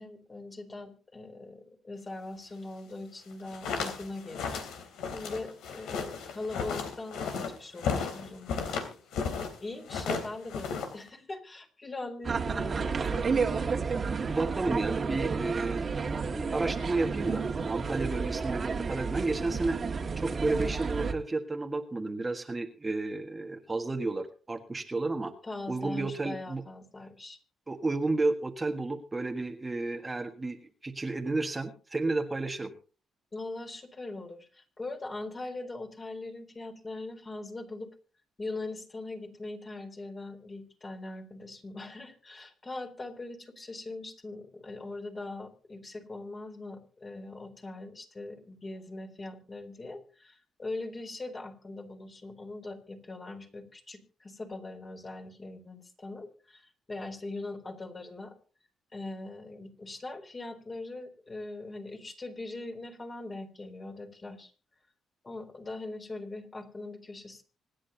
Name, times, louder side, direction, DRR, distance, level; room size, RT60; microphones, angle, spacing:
voice 1, 0.0-4.6 5.1-8.7 9.6-13.7 25.4-27.4 33.3-37.9 38.4-58.3 58.9-64.5 65.2-67.4, left 2 dB, 30° left, 4 dB, 3.8 m, -41 dB
sound 1, 3.3-9.5 9.8-11.1, left 5 dB, 85° left, 3.3 m, -34 dB
sound 2, 12.2-21.1, right 5 dB, 40° right, 2.0 m, -31 dB
voice 2, 14.1-15.8 16.1-17.4 17.7-19.8 20.2-25.3 25.7-26.6 27.7-32.7, right 3 dB, 20° right, 4 dB, 1.6 m, -32 dB
25.5 x 10.0 x 2.9 m, 0.37 s
cardioid pair, 90°, 0 cm